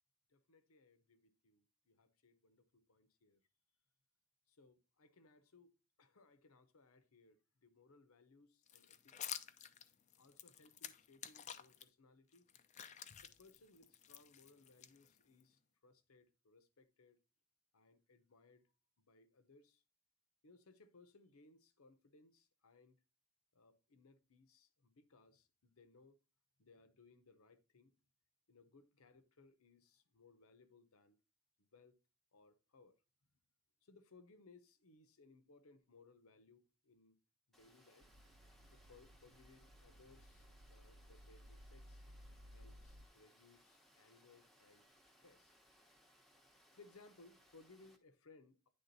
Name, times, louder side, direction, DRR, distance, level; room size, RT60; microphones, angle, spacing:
voice 1, 0.3-3.4 4.5-9.4 10.2-12.5 13.2-17.2 17.7-18.7 19.0-19.8 20.4-23.0 23.5-26.2 26.6-27.9 28.5-31.2 31.6-32.0 32.3-33.0 33.8-37.2 37.5-38.1 38.7-42.0 42.5-44.9 45.2-45.5 46.7-48.7, left 3 dB, 75° left, 0.8 m, -66 dB
sound 1, 8.7-11.9 12.3-15.4, left 9 dB, 35° left, 0.4 m, -51 dB
Water, 37.5-48.0, equal, ahead, 0.8 m, -70 dB
sound 2, 38.0-43.1, equal, 70° right, 0.8 m, -59 dB
9.5 x 3.6 x 4.0 m
head